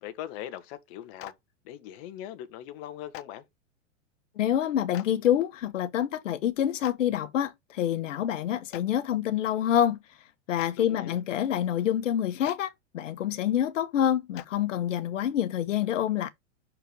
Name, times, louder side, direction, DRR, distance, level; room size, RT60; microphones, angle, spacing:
voice 1, 0.0-1.3 1.6-3.4 10.8-11.2, left 12 dB, 50° left, 1.3 m, -40 dB
Clapping, 1.2-1.3 3.1-3.2 4.9-5.1 6.8-6.9 8.7-8.8 10.5-10.7 12.4-12.5 14.3-14.5, left 15 dB, 30° left, 0.4 m, -41 dB
voice 2, 4.4-10.0 10.5-16.3, left 10 dB, 80° left, 1.2 m, -27 dB
5.9 x 4.6 x 5.2 m
hypercardioid pair, 135°, 37 cm